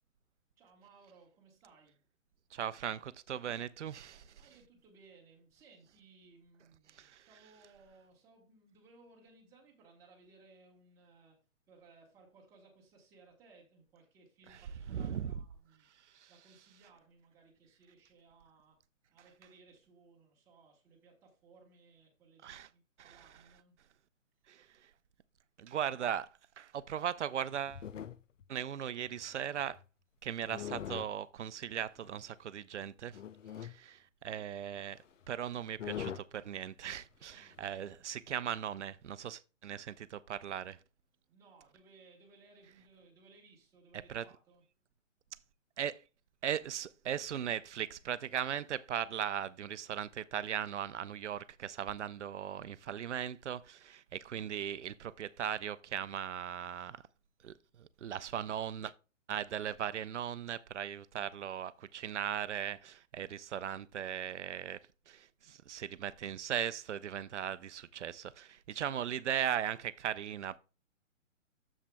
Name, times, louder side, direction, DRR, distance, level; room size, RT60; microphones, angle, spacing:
voice 1, 0.6-2.0 4.4-11.4 11.7-18.8 19.1-23.8 41.3-44.6, right 3 dB, 5° right, 1.2 m, -62 dB
voice 2, 2.5-4.4 6.9-7.3 14.9-15.3 16.1-16.3 22.4-22.7 23.0-23.3 24.5-24.9 25.6-26.3 26.6-27.9 28.5-29.8 30.2-33.2 33.6-35.0 35.3-40.8 44.1-44.2 45.8-46.0 46.4-57.0 57.4-58.9 59.3-70.6, right 9 dB, 60° right, 0.6 m, -38 dB
sound 1, 27.4-28.4 29.0-29.8 30.5-31.1 32.1-32.2 33.1-33.8 34.9-35.0 35.2-35.3 35.8-36.3 37.5-37.7, left 9 dB, 70° left, 0.7 m, -42 dB
10.0 x 7.5 x 2.2 m
hypercardioid pair, 165°, 39 cm